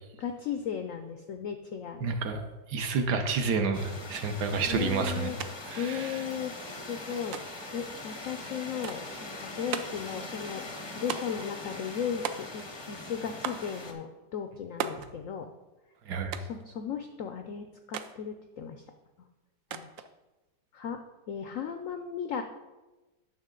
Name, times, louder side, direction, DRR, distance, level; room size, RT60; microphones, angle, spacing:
voice 1, 0.2-2.2 4.7-5.4 5.7-7.4 7.7-10.6 11.0-15.5 16.4-18.8 19.7-19.9 20.7-21.0 21.3-22.4, left 7 dB, 75° left, 7 dB, 0.7 m, -36 dB
voice 2, 2.0-5.3 5.7-6.1 16.1-16.3, right 4 dB, 65° right, 6 dB, 1.3 m, -30 dB
sound 1, 3.7-13.9, left 2 dB, 35° left, 0.4 m, -42 dB
sound 2, 5.4-5.5 5.8-6.5 7.3-7.7 8.8-9.2 9.7-10.1 11.1-11.5 12.2-12.8 13.4-13.7 14.8-15.1 16.3-16.6 17.9-18.2 19.7-20.1, right 7 dB, 90° right, 0.7 m, -36 dB
9.7 x 6.3 x 3.8 m, 1.1 s
omnidirectional pair, 2.0 m